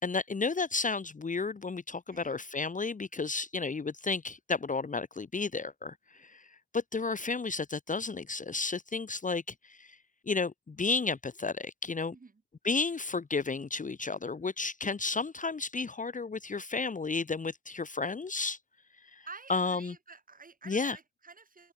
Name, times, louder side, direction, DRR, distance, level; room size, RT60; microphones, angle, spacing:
voice 1, 0.0-6.4 6.7-10.0 10.3-12.1 12.6-18.6 19.1-19.9 20.7-21.0, left 4 dB, 25° left, 1.6 m, -32 dB
voice 2, 2.1-2.4 12.1-12.3 19.3-21.7, right 4 dB, 30° right, 5.2 m, -50 dB
open air
cardioid pair, 90°, 30 cm